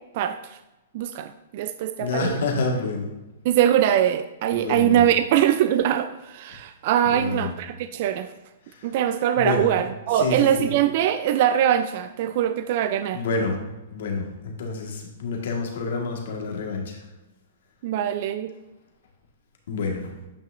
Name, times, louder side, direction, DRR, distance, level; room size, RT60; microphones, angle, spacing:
voice 1, 0.9-2.3 3.4-8.3 8.8-13.2 17.8-18.5, right 10 dB, 50° right, 11 dB, 0.4 m, -22 dB
voice 2, 2.0-3.1 4.5-5.1 6.5-6.6 7.0-7.5 8.6-8.9 9.3-9.7 10.1-10.8 13.1-13.6 13.9-17.0 19.7-20.1, left 3 dB, 65° left, 1 dB, 1.6 m, -28 dB
9.0 x 5.4 x 2.6 m, 1.0 s
hypercardioid pair, 120°, 0 cm